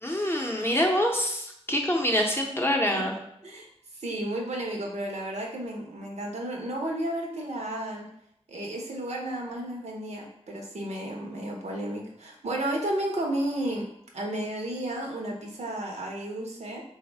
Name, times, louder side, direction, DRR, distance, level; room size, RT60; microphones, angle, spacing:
voice 1, 0.0-3.2, equal, 20° left, 0 dB, 0.6 m, -25 dB
voice 2, 3.9-8.1 8.5-13.9 14.1-16.8, right 1 dB, 80° right, 0 dB, 0.6 m, -32 dB
3.4 x 2.1 x 3.2 m, 0.72 s
wide cardioid pair, 60°, 11 cm